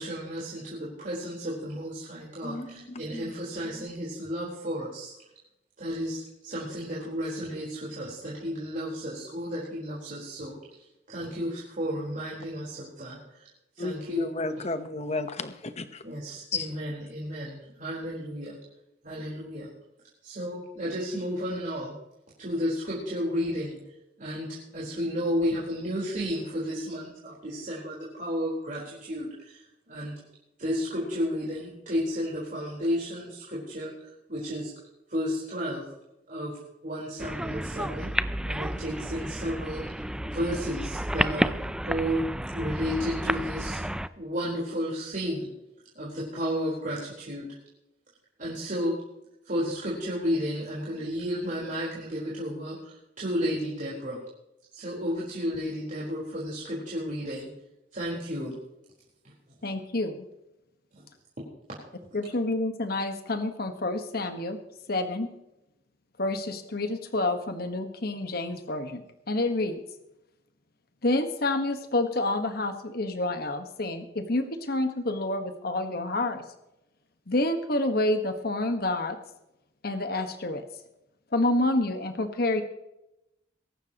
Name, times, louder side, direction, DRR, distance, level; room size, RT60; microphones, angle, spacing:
voice 1, 0.0-5.1 5.8-13.5 13.7-14.6 16.0-18.6 19.0-19.7 20.2-21.9 22.4-23.8 24.2-30.1 30.6-34.7 35.1-35.8 36.3-36.5 36.8-38.1 38.4-42.2 42.5-43.8 44.2-45.5 45.9-47.5 48.4-48.9 49.4-54.2 54.7-57.5 57.9-58.5 59.2-59.3 60.9-61.0, equal, 50° right, 4.4 m, -32 dB
voice 2, 13.8-15.9 16.5-16.7, left 3 dB, 40° left, 1.1 m, -32 dB
sound 1, 37.2-44.1, right 1 dB, 5° right, 0.4 m, -31 dB
voice 3, 59.6-60.2 62.1-64.6 64.9-65.3 66.2-69.8 71.0-76.4 77.3-79.2 79.8-80.6 81.3-82.6, left 2 dB, 60° left, 1.5 m, -28 dB
22.5 x 11.5 x 3.0 m
head